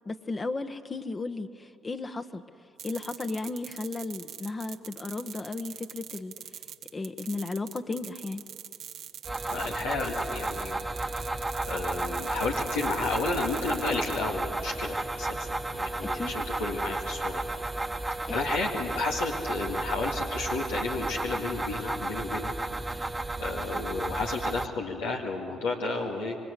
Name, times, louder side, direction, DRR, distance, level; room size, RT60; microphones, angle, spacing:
voice 1, 0.0-2.4 2.8-6.3 6.9-8.4 16.1-16.3 18.3-18.4, left 3 dB, 35° left, 7 dB, 1.3 m, -34 dB
sound 1, 2.8-14.2, right 10 dB, 75° right, 1.1 m, -44 dB
sound 2, 9.2-24.7, right 2 dB, 20° right, 1.3 m, -33 dB
voice 2, 9.5-10.8 11.6-17.4 18.2-22.5 23.4-26.4, left 3 dB, 90° left, -2 dB, 2.2 m, -32 dB
26.5 x 23.5 x 8.4 m, 2.5 s
hypercardioid pair, 55°, 0 cm